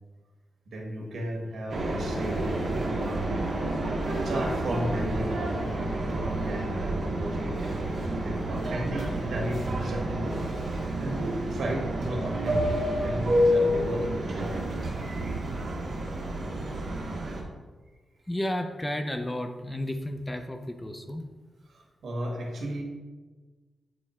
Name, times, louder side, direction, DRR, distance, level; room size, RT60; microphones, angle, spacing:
voice 1, 0.7-2.4 2.8-3.3 4.2-7.8 8.2-10.5 11.0-14.5 22.0-22.8, right 1 dB, 75° right, 0 dB, 1.4 m, -34 dB
sound 1, 1.7-17.4, right 1 dB, 50° right, 1.6 m, -29 dB
voice 2, 18.3-21.3, left 1 dB, 15° left, 5 dB, 0.5 m, -32 dB
8.5 x 3.1 x 4.3 m, 1.3 s
wide cardioid pair, 135°, 0 cm